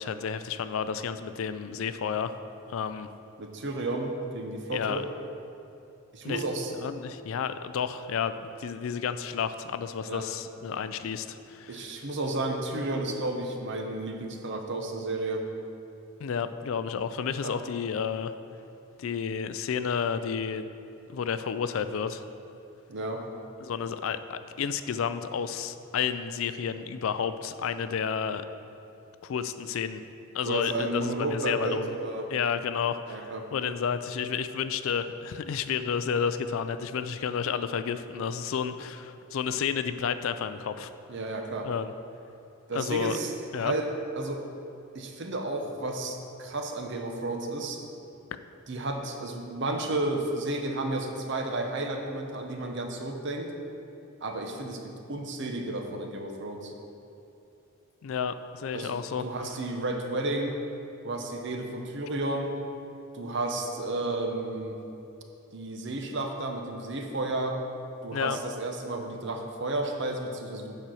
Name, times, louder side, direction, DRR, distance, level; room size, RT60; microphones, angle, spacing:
voice 1, 0.0-2.3 2.7-3.1 4.7-5.0 6.2-6.4 6.8-11.8 16.2-18.3 19.0-20.7 21.1-22.2 23.6-28.4 29.2-30.0 30.3-31.9 32.3-40.9 41.6-41.9 42.7-43.2 43.5-43.7 58.0-59.2 68.1-68.4, left 7 dB, 70° left, 11 dB, 0.4 m, -31 dB
voice 2, 3.4-5.1 6.1-6.7 10.1-10.3 11.7-15.5 17.4-17.5 22.9-23.2 30.4-32.3 33.1-33.5 41.1-41.7 42.7-43.9 44.2-44.4 44.9-47.8 48.7-53.5 54.2-56.7 58.7-59.0 59.2-60.6 61.0-62.6 63.1-64.8 65.5-67.6 68.0-70.8, right 2 dB, 55° right, 3 dB, 0.8 m, -32 dB
8.7 x 4.4 x 6.2 m, 2.8 s
head